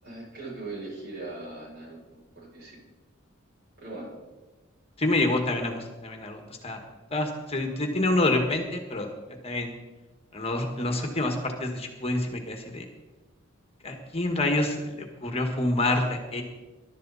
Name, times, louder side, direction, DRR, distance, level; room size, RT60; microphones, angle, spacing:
voice 1, 0.0-2.8 3.8-4.1, right 2 dB, 50° right, -3 dB, 6.7 m, -40 dB
voice 2, 5.0-6.8 7.1-9.1 9.4-9.7 10.3-12.9 13.8-16.4, left 2 dB, 30° left, 4 dB, 1.7 m, -27 dB
21.0 x 12.0 x 4.2 m, 1.2 s
head